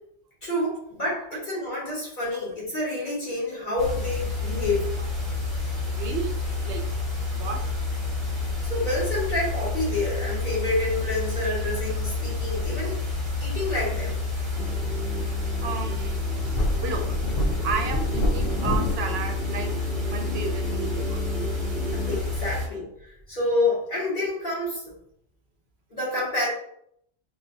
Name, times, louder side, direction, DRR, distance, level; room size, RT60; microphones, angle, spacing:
voice 1, 0.4-4.9 8.6-13.0 13.4-14.2 21.9-24.9 25.9-26.5, left 2 dB, 45° left, -7 dB, 1.6 m, -28 dB
sound 1, 3.8-22.7, left 3 dB, 30° right, 0.7 m, -29 dB
sound 2, 5.3-19.0, left 1 dB, 65° left, 0.7 m, -33 dB
voice 2, 5.8-6.3 6.6-7.6 15.6-16.3 16.8-17.2 17.6-19.7 20.1-21.2 22.0-22.1, right 5 dB, 70° right, 4 dB, 0.8 m, -33 dB
sound 3, 14.5-22.2, right 2 dB, 10° left, 0.7 m, -37 dB
4.5 x 2.2 x 2.6 m, 0.70 s
omnidirectional pair, 1.1 m